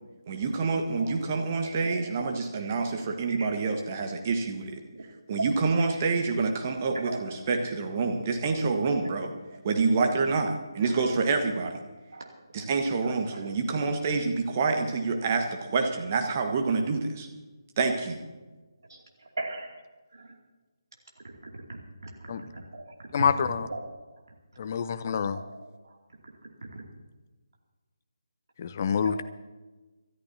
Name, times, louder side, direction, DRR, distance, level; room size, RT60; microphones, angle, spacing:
voice 1, 0.3-4.7 5.3-9.3 9.6-11.7 12.5-17.3 17.8-18.2, right 4 dB, 30° right, 4 dB, 1.5 m, -27 dB
voice 2, 1.6-2.0 3.3-3.7 4.9-5.0 6.9-7.4 9.5-9.6 10.9-11.2 12.1-12.3 13.3-13.4 18.9-19.0 19.4-19.8 20.1-20.3 21.2-23.1 23.7-23.8 25.3-26.0 26.4-26.8 29.0-29.2, right 2 dB, 60° right, 0 dB, 2.6 m, -40 dB
voice 3, 23.1-23.7 24.6-25.4 28.6-29.2, left 6 dB, 35° left, 12 dB, 0.6 m, -26 dB
25.5 x 13.5 x 2.8 m, 1.2 s
figure-of-eight pair, 150°, 2 cm